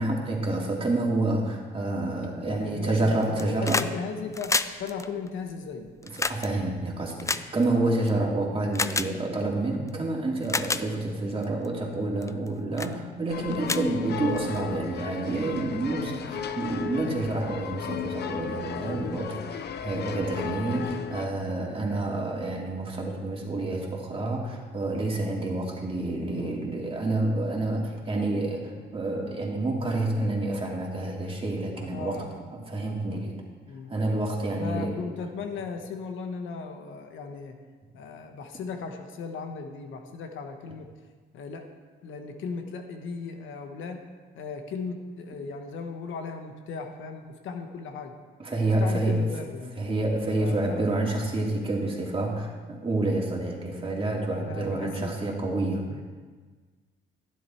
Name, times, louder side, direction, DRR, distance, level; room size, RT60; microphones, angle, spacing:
voice 1, 0.0-3.8 6.3-32.2 32.5-33.4 33.9-34.9 48.4-49.3 49.8-55.9, right 2 dB, 25° right, -2 dB, 2.6 m, -28 dB
voice 2, 2.4-5.9 26.2-26.6 31.8-32.4 33.1-33.2 33.6-33.9 34.5-37.6 37.9-40.9 41.3-41.7 42.0-44.1 44.3-48.2 48.6-49.8 50.4-50.8 54.3-55.2 55.8-56.0, left 4 dB, 80° left, 5 dB, 1.3 m, -37 dB
sound 1, 3.2-3.9 4.2-8.1 8.7-9.1 9.9-10.0 10.4-10.8 11.4-11.7 12.2-12.5 12.8-12.9 13.3-13.4 13.6-14.6 15.7-15.8, left 3 dB, 15° left, 0.4 m, -29 dB
sound 2, 13.3-21.3, left 7 dB, 55° left, 0.7 m, -35 dB
12.0 x 10.5 x 4.5 m, 1.5 s
cardioid pair, 90°, 20 cm